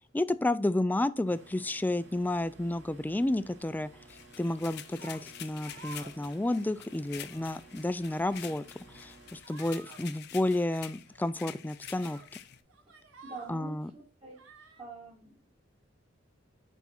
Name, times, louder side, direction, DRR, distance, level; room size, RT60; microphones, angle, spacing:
voice 1, 0.1-3.9 4.4-8.6 8.9-12.2 13.5-13.9, left 1 dB, 10° left, 0.3 m, -31 dB
sound 1, 1.2-9.4, right 3 dB, 70° right, 2.8 m, -55 dB
sound 2, 4.1-12.6, left 11 dB, 60° left, 0.6 m, -48 dB
sound 3, 4.9-5.2 5.6-6.2 6.5-6.8 7.1-7.6 8.1-8.6 8.9-9.1 9.4-10.0 11.1-11.2 11.9-12.3 12.7-13.6 14.3-14.8, right 4 dB, 85° right, 1.4 m, -52 dB
voice 2, 13.2-14.4 14.8-15.3, right 3 dB, 30° right, 1.5 m, -45 dB
9.6 x 3.6 x 4.3 m
head